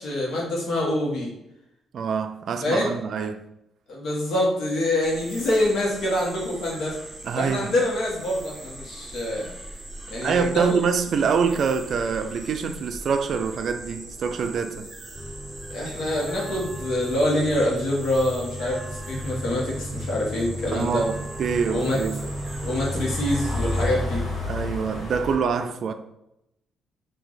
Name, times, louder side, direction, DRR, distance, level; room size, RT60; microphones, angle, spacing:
voice 1, 0.0-1.3 2.6-3.0 3.9-7.0 7.3-9.5 10.1-10.7 15.7-21.1 21.7-22.0 22.6-24.2, left 1 dB, 70° left, 1.3 m, -25 dB
voice 2, 1.9-3.4 7.2-7.7 10.2-14.9 20.7-21.1 21.4-22.2 24.5-25.9, right 6 dB, 60° right, 0.3 m, -25 dB
sound 1, 5.0-23.9, right 1 dB, 20° right, 0.7 m, -41 dB
sound 2, 15.1-25.3, left 1 dB, 50° left, 1.4 m, -32 dB
3.0 x 2.7 x 3.9 m
cardioid pair, 90°, 0 cm